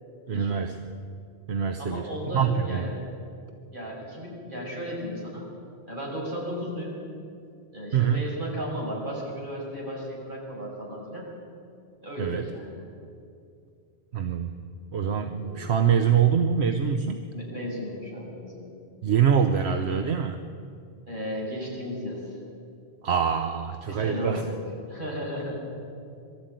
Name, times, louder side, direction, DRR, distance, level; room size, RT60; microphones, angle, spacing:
voice 1, 0.3-0.8 1.5-2.9 7.9-8.2 12.2-12.4 14.1-14.5 14.9-17.2 19.0-20.4 23.0-24.4, right 7 dB, 80° right, 7 dB, 1.1 m, -24 dB
voice 2, 1.8-2.9 3.7-5.5 5.9-7.0 7.7-11.3 12.0-12.8 15.3-15.7 17.3-18.7 21.1-22.4 23.8-24.6 24.9-25.6, equal, 50° right, -3 dB, 6.1 m, -35 dB
22.5 x 13.5 x 9.1 m, 2.4 s
omnidirectional pair, 1.1 m